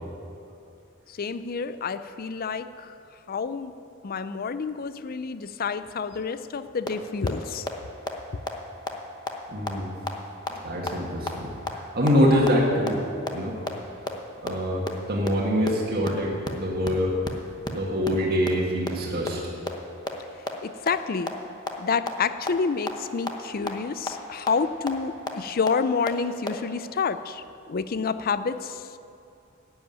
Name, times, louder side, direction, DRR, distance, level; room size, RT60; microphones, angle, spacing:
voice 1, 1.2-2.7 3.3-3.7 4.0-7.7 20.6-21.4 21.8-28.8, left 5 dB, 45° left, 13 dB, 0.5 m, -28 dB
sound 1, 6.9-7.0 7.3-7.4 7.7-7.8 8.1-8.2 8.5-8.6 8.9-9.0 9.3-9.4 9.7-9.8 10.1-10.2 10.5-10.6 10.9-11.0 11.3-11.4 11.7-11.8 12.1-12.2 12.5-12.6 12.9-13.0 13.3-13.4 13.7-13.8 14.1-14.2 14.5-14.6 14.9-15.0 15.3-15.4 15.7-15.8 16.0-16.1 16.4-16.5 16.8-16.9 17.2-17.3 17.6-17.7 18.0-18.1 18.5-18.6 18.9-19.0 19.3-19.4 19.7-19.8 20.1-20.2 20.5-20.6 20.9-21.0 21.3-21.4 21.7-21.8 22.1-22.2 22.5-22.6 22.9-23.0 23.3-23.4 23.7-23.8 24.1-24.2 24.5-24.6 24.9-25.0 25.3-25.4 25.7-25.8 26.1-26.2 26.5-26.6, left 3 dB, 20° left, 0.9 m, -28 dB
voice 2, 9.5-9.9 10.5-13.0 13.3-13.6 14.4-17.2 17.7-19.4, equal, 50° right, -3 dB, 1.8 m, -25 dB
11.0 x 7.8 x 9.0 m, 2.6 s
head